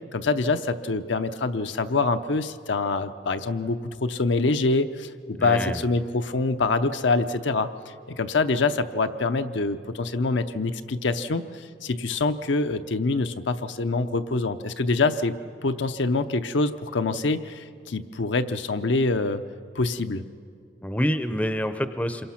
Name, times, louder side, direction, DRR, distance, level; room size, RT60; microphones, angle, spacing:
voice 1, 0.1-7.7 8.1-15.3 15.6-19.4 19.7-20.3, left 3 dB, 75° left, 8 dB, 0.7 m, -25 dB
voice 2, 5.4-5.8 20.8-22.3, equal, 10° left, 10 dB, 0.6 m, -27 dB
27.0 x 23.0 x 5.8 m, 2.4 s
head